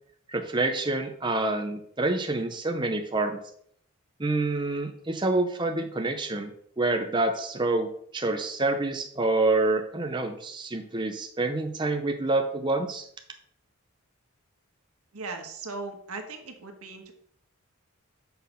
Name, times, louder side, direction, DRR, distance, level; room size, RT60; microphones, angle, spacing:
voice 1, 0.3-3.4 4.2-13.0, right 2 dB, 20° right, 5 dB, 0.6 m, -27 dB
voice 2, 15.1-17.1, right 3 dB, 85° right, 5 dB, 1.3 m, -38 dB
6.3 x 5.5 x 5.6 m, 0.67 s
head